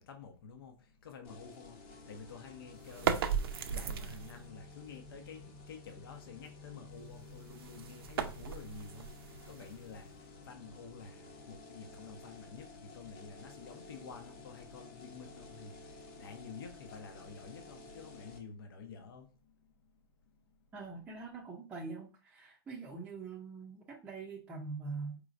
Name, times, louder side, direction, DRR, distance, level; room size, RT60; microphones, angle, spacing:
voice 1, 0.0-19.5, left 5 dB, 75° left, 1.0 m, -50 dB
sound 1, 1.2-18.4, left 3 dB, 35° left, 1.0 m, -53 dB
sound 2, 2.8-4.5 7.2-10.1, right 7 dB, 85° right, 0.6 m, -37 dB
voice 2, 20.7-25.2, right 4 dB, 10° right, 0.6 m, -43 dB
4.8 x 3.0 x 2.5 m
supercardioid pair, 155°, 12 cm